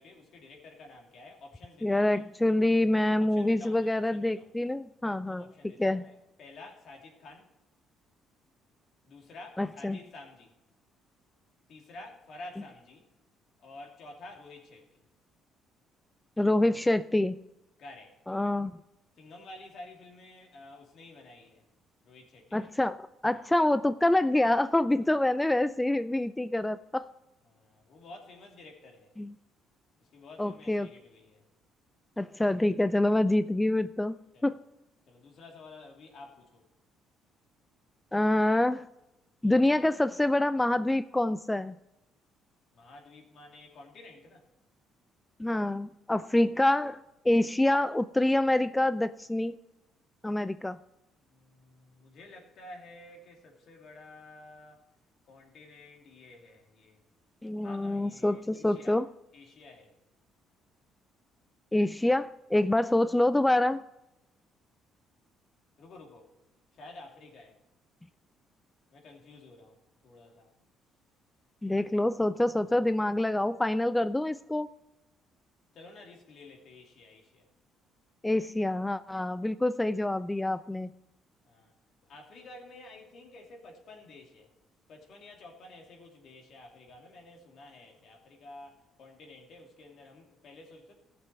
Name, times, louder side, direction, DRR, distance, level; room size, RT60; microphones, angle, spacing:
voice 1, 0.0-2.3 3.2-4.5 5.3-7.5 9.0-10.5 11.7-13.1 13.6-15.0 17.8-18.2 19.2-21.7 22.0-22.7 23.3-23.5 24.9-25.2 27.4-29.2 30.0-31.4 32.9-33.0 34.3-34.5 35.1-36.6 42.7-44.5 51.2-54.8 55.2-57.0 57.6-59.0 59.3-59.9 65.8-66.3 66.7-67.6 68.9-70.5 72.3-73.2 75.7-77.5 81.4-81.7 82.0-84.5 84.9-90.9, left 2 dB, 60° left, 1 dB, 2.7 m, -51 dB
voice 2, 1.8-5.5 5.8-6.1 9.6-10.0 16.4-17.4 18.3-18.7 22.5-27.1 29.2-29.3 30.4-30.9 32.2-34.6 38.1-38.9 39.4-41.8 45.4-49.5 50.2-50.8 57.4-59.1 61.7-63.8 71.6-74.7 78.2-80.9, left 1 dB, 10° left, 13 dB, 0.3 m, -26 dB
15.0 x 6.8 x 4.6 m, 0.95 s
cardioid pair, 90°, 0 cm